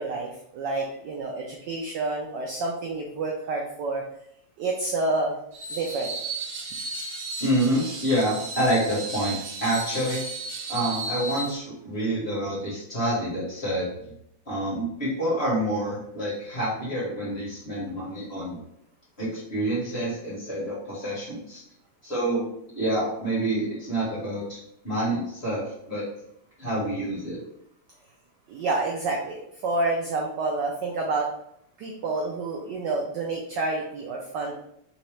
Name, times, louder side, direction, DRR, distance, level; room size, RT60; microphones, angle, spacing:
voice 1, 0.0-4.0 4.6-5.4 5.7-6.1 28.5-31.3 31.8-34.5, right 3 dB, 80° right, 0 dB, 1.0 m, -28 dB
Screech, 5.5-11.6, right 3 dB, 55° right, 1.4 m, -34 dB
voice 2, 7.4-10.2 10.7-13.9 14.5-18.6 19.2-21.6 22.0-22.4 22.7-26.0 26.6-27.4, right 1 dB, 35° left, -7 dB, 1.3 m, -27 dB
3.6 x 2.9 x 3.1 m, 0.75 s
omnidirectional pair, 2.4 m